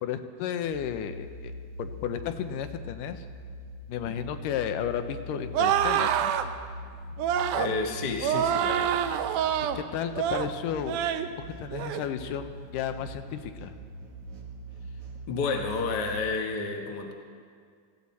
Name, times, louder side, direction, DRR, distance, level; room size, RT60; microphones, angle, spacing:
voice 1, 0.0-1.5 1.8-3.3 3.9-6.3 9.7-11.0 11.6-13.8, left 9 dB, 90° left, 9 dB, 2.3 m, -33 dB
sound 1, 0.6-16.3, right 1 dB, 65° right, 3.0 m, -42 dB
sound 2, 5.5-6.5 7.2-7.7 8.2-9.8 10.1-10.5 10.9-11.3 11.7-12.0, right 9 dB, 80° right, 2.1 m, -26 dB
voice 2, 7.5-9.0 15.3-17.1, left 4 dB, 60° left, 2 dB, 1.1 m, -30 dB
17.5 x 15.5 x 4.2 m, 2.1 s
omnidirectional pair, 3.7 m